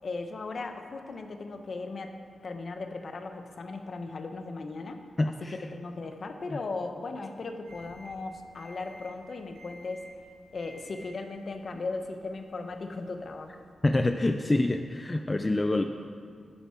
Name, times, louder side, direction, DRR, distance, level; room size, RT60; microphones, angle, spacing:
voice 1, 0.0-2.1 2.4-5.0 5.3-10.1 10.5-13.6, left 3 dB, 60° left, 6 dB, 0.8 m, -37 dB
voice 2, 5.2-5.6 6.5-6.6 13.8-15.8, left 2 dB, 25° left, 6 dB, 0.4 m, -26 dB
sound 1, 7.7-13.7, equal, 90° right, 1.4 m, -54 dB
11.0 x 7.0 x 4.4 m, 2.2 s
cardioid pair, 80°, 0 cm